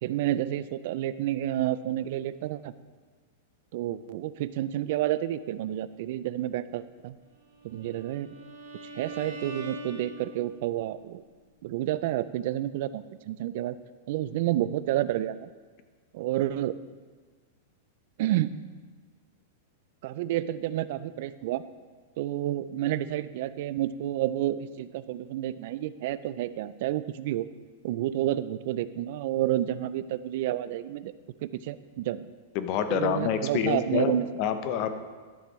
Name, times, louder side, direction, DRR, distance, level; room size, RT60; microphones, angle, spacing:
voice 1, 0.0-2.7 3.7-7.2 7.6-8.3 8.9-11.2 11.6-13.8 14.1-15.5 16.1-16.8 18.2-18.5 20.0-21.6 22.2-27.5 27.8-31.1 31.4-32.3 32.9-34.3, right 13 dB, 55° right, 15 dB, 0.3 m, -30 dB
Bowed string instrument, 7.6-10.7, right 1 dB, 85° right, 1.6 m, -42 dB
voice 2, 32.5-34.9, left 8 dB, 40° left, 9 dB, 0.6 m, -27 dB
11.5 x 6.8 x 3.1 m, 1.5 s
supercardioid pair, 150°, 0 cm